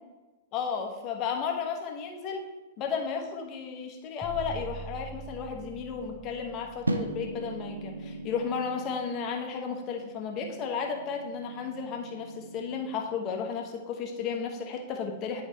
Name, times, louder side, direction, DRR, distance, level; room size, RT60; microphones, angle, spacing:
voice 1, 0.5-2.5 2.8-15.4, left 6 dB, 35° left, 2 dB, 1.0 m, -33 dB
sound 1, 4.2-8.3, right 4 dB, 15° right, 1.1 m, -43 dB
sound 2, 6.9-13.1, right 2 dB, 80° right, 0.5 m, -39 dB
10.0 x 4.1 x 3.2 m, 1.1 s
figure-of-eight pair, 100°, 0 cm